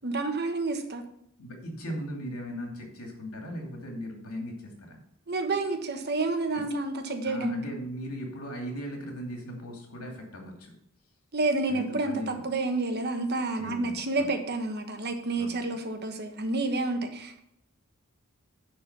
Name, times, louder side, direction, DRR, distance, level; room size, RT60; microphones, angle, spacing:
voice 1, 0.0-1.0 5.3-7.6 11.3-17.4, right 2 dB, 50° right, 5 dB, 1.2 m, -29 dB
voice 2, 1.4-5.0 6.5-6.6 7.2-10.7 11.7-12.4 13.6-14.3 15.3-15.6, equal, 85° left, 1 dB, 2.6 m, -38 dB
10.5 x 4.4 x 6.7 m, 0.75 s
head